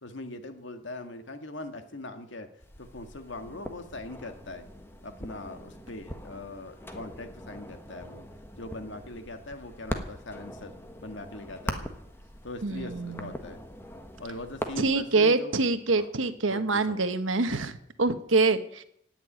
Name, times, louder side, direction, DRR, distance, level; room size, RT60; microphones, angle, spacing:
voice 1, 0.0-2.5 2.8-4.7 5.0-8.2 8.6-10.8 11.0-11.9 12.4-13.6 14.2-15.6 15.9-16.1 16.5-17.0, left 2 dB, 70° left, 7 dB, 1.7 m, -41 dB
sound 1, 2.6-15.0, equal, 10° left, 1.3 m, -41 dB
voice 2, 12.6-13.3 14.8-18.8, right 3 dB, 90° right, 10 dB, 1.3 m, -25 dB
16.5 x 7.0 x 9.6 m, 0.73 s
head